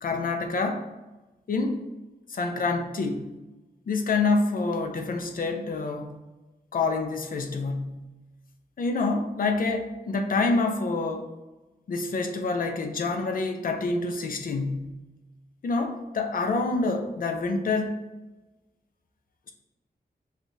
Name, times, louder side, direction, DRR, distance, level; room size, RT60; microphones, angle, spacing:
voice 1, 0.0-0.8 1.5-1.8 2.3-3.2 3.9-6.2 6.7-8.0 8.8-11.3 11.9-15.0 15.6-18.0, left 3 dB, 55° left, 4 dB, 0.5 m, -27 dB
6.2 x 2.4 x 2.7 m, 1.1 s
wide cardioid pair, 125°, 17 cm